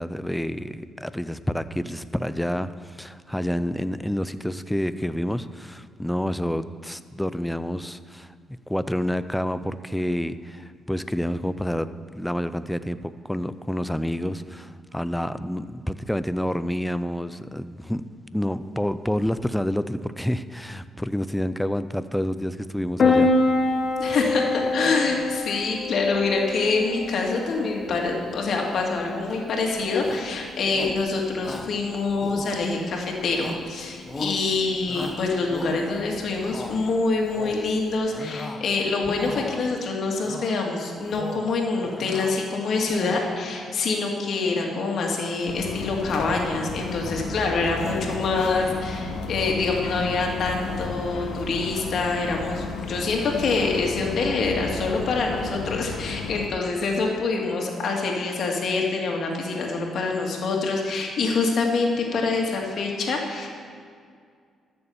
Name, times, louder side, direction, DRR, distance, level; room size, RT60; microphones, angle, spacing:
voice 1, 0.0-8.3 8.7-11.9 12.1-18.0 18.3-23.3, equal, 5° left, 13 dB, 0.5 m, -28 dB
Piano, 23.0-38.0, left 3 dB, 45° left, 1.4 m, -28 dB
voice 2, 24.0-63.5, left 3 dB, 60° left, 0 dB, 2.3 m, -26 dB
Shout, 30.0-30.3 30.7-31.1 31.4-31.8 32.2-32.9 33.3-33.7 34.1-34.4 34.9-36.0 36.4-36.8 37.2-37.7 38.1-38.7 39.0-39.7 40.2-40.6 41.0-41.5 41.8-42.4 42.7-43.4, left 2 dB, 20° left, 1.0 m, -36 dB
sound 1, 45.5-56.5, left 4 dB, 85° left, 1.3 m, -33 dB
13.0 x 6.9 x 7.0 m, 2.2 s
cardioid pair, 90°, 0 cm